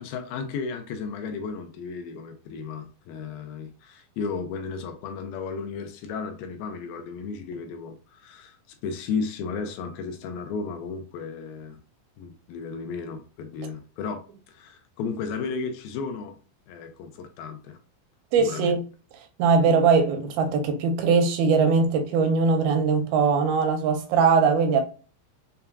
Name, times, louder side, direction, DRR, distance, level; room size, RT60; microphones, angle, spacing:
voice 1, 0.0-8.6 8.8-11.8 12.2-14.2 14.5-16.4 16.7-17.8 18.4-18.8, left 5 dB, 80° left, 2.3 m, -34 dB
voice 2, 18.3-18.8 19.4-24.8, right 5 dB, 85° right, 2.3 m, -21 dB
6.8 x 2.3 x 2.3 m
omnidirectional pair, 4.4 m